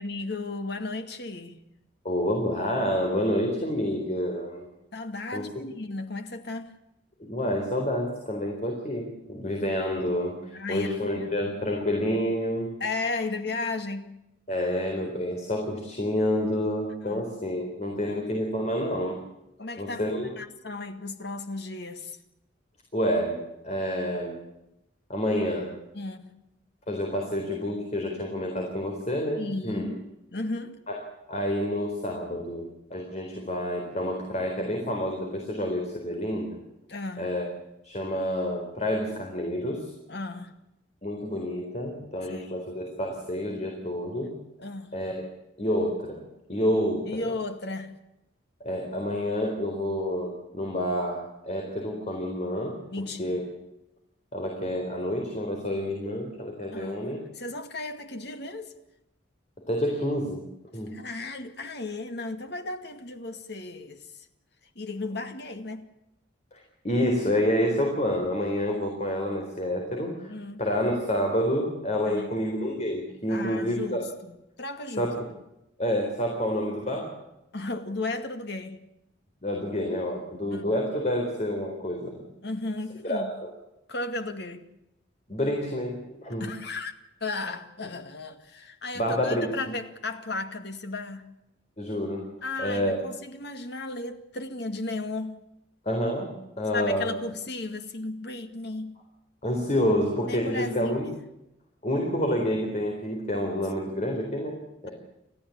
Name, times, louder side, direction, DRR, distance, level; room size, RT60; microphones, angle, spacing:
voice 1, 0.0-1.6 4.9-6.8 9.6-9.7 10.5-11.6 12.8-14.1 17.0-17.3 18.1-18.2 19.6-22.2 25.9-26.4 29.4-30.0 30.3-30.8 36.9-37.3 40.1-40.6 42.2-42.6 44.6-44.9 47.1-47.9 52.9-53.4 56.7-58.7 60.9-64.1 64.8-65.9 70.3-70.6 72.1-72.4 73.3-75.1 77.5-78.8 80.5-80.6 82.4-83.3 83.9-84.7 86.4-86.9 87.2-91.2 92.4-95.4 96.7-99.0 100.3-101.2, left 2 dB, 60° left, 2.2 m, -35 dB
voice 2, 2.0-4.6 5.3-5.5 7.2-12.7 14.5-19.2 19.8-20.3 22.9-24.4 25.1-25.8 26.9-29.9 30.9-31.0 31.3-36.6 37.2-37.5 37.8-39.9 41.0-44.4 44.9-45.2 45.6-47.4 48.6-52.8 53.2-53.4 54.3-57.2 59.7-60.4 60.7-60.9 66.5-70.3 70.6-74.0 75.0-75.2 75.8-77.2 79.4-82.2 83.0-83.3 85.3-86.5 88.9-89.5 91.8-92.2 92.6-93.0 95.8-96.3 96.6-97.1 99.4-101.1 101.8-104.9, equal, 35° left, 4.1 m, -28 dB
30.0 x 14.5 x 8.6 m
head